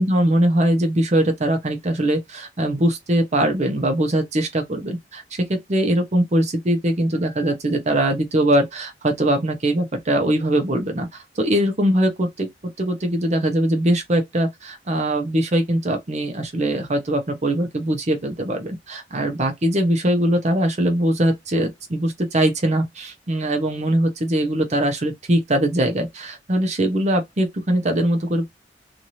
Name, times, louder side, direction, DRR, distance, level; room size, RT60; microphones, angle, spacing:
voice 1, 0.0-12.5 12.8-28.5, right 1 dB, 40° right, 0.7 m, -21 dB
3.0 x 2.6 x 2.7 m
head